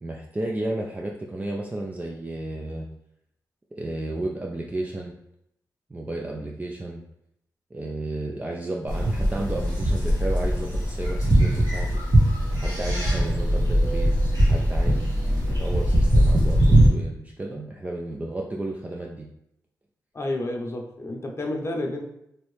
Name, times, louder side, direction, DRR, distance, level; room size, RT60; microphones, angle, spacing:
voice 1, 0.0-2.9 3.7-5.2 5.9-7.0 7.7-12.0 12.6-19.3, right 2 dB, 20° right, -1 dB, 0.4 m, -33 dB
sound 1, 8.9-16.9, equal, 65° right, 1.5 m, -21 dB
voice 2, 20.1-22.0, left 1 dB, 40° left, 1 dB, 0.7 m, -30 dB
3.0 x 2.7 x 3.2 m, 0.79 s
cardioid pair, 55°, 7 cm